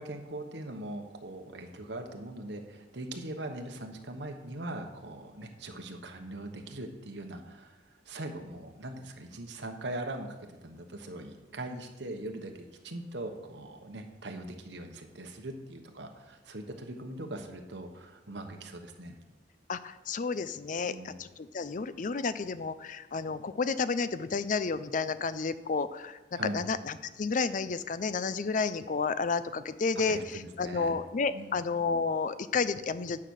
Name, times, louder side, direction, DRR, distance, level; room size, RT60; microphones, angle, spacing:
voice 1, 0.0-7.8 8.1-10.4 10.6-19.1 20.8-21.1 26.3-26.6 29.9-31.0 31.3-31.6, right 1 dB, 75° right, 4 dB, 1.2 m, -41 dB
voice 2, 19.7-26.2 26.5-33.2, left 4 dB, 45° left, 14 dB, 0.5 m, -31 dB
9.9 x 5.9 x 6.5 m, 1.1 s
head